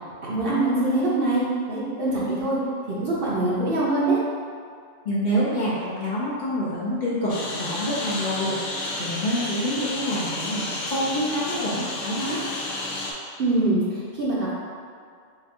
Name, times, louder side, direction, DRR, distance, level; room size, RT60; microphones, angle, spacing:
voice 1, 0.2-2.6 3.0-4.2 13.4-14.5, right 2 dB, 50° right, -7 dB, 0.9 m, -23 dB
voice 2, 5.0-8.6 9.0-12.4, equal, 45° left, -9 dB, 0.7 m, -27 dB
Engine, 7.3-13.1, left 2 dB, 75° left, 1.0 m, -31 dB
4.3 x 2.5 x 3.6 m, 2.2 s
omnidirectional pair, 1.3 m